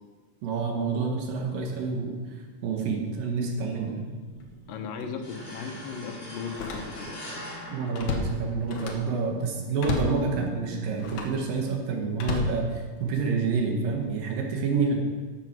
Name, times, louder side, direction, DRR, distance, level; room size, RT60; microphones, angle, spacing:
voice 1, 0.4-2.1 2.6-4.1 7.7-15.0, right 4 dB, 85° right, 1 dB, 3.1 m, -28 dB
sound 1, 2.1-11.2, right 4 dB, 60° right, 1.8 m, -47 dB
Slam, 4.3-4.6 5.0-5.1 6.4-7.3 7.6-9.2 9.8-10.2 11.0-11.4 12.1-13.2 13.8-14.1, left 3 dB, 65° left, 2.4 m, -33 dB
voice 2, 4.7-7.4, left 6 dB, 85° left, 5 dB, 2.7 m, -37 dB
sound 2, 5.2-8.8, left 1 dB, 50° left, 4.2 m, -42 dB
12.5 x 6.9 x 6.1 m, 1.4 s
omnidirectional pair, 3.9 m